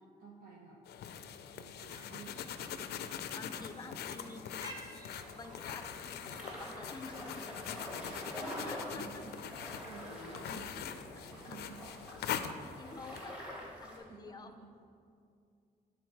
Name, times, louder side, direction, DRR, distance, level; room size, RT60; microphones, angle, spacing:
voice 1, 0.2-0.8 1.5-2.9 3.3-4.5 7.2-8.6 8.8-12.1 14.0-14.7, right 4 dB, 65° right, -4 dB, 0.9 m, -54 dB
sound 1, 0.9-13.3, left 8 dB, 90° left, 0.4 m, -43 dB
sound 2, 1.8-7.1, right 1 dB, 25° right, 0.9 m, -55 dB
voice 2, 3.0-4.5 5.1-8.0 8.6-9.2 12.8-14.5, left 4 dB, 25° left, 7 dB, 0.4 m, -49 dB
sound 3, 5.1-14.0, equal, 5° right, 1.5 m, -46 dB
9.2 x 3.9 x 4.5 m, 2.4 s
cardioid pair, 125°, 16 cm